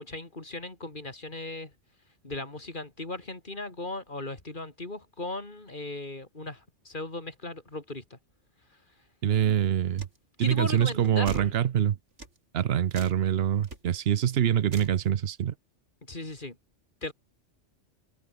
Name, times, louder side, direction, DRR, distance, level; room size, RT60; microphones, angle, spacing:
voice 1, 0.0-1.7 2.2-8.2 10.4-11.5 16.0-16.6 17.0-17.1, left 2 dB, 40° left, 3.5 m, -37 dB
voice 2, 9.2-10.1 10.4-12.0 12.5-15.5, right 10 dB, 60° right, 0.9 m, -25 dB
sound 1, 10.0-10.2 11.3-11.5 12.2-12.4 12.9-13.2 13.6-13.8 14.7-15.0, right 2 dB, 75° right, 4.7 m, -41 dB
omnidirectional pair, 1.2 m